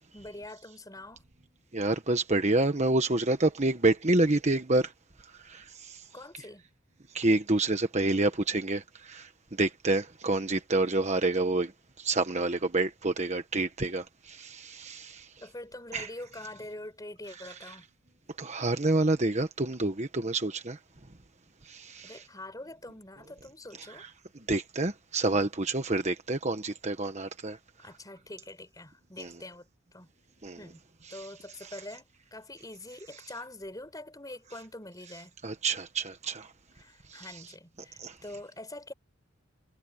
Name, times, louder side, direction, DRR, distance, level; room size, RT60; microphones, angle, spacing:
voice 1, 0.1-1.2 6.1-6.6 15.4-17.8 22.0-24.0 27.8-30.1 30.6-30.8 31.1-35.3 36.4-36.5 36.8-38.9, left 1 dB, 20° left, 4.9 m, -44 dB
voice 2, 1.7-4.9 5.4-6.0 7.1-9.3 9.6-11.7 12.0-15.3 15.9-16.1 17.3-17.8 18.4-20.8 21.6-22.3 23.8-27.6 29.2-29.4 30.4-30.6 31.0-31.3 31.6-31.8 35.4-36.5 37.1-37.5 38.0-38.2, right 2 dB, 35° right, 1.3 m, -28 dB
head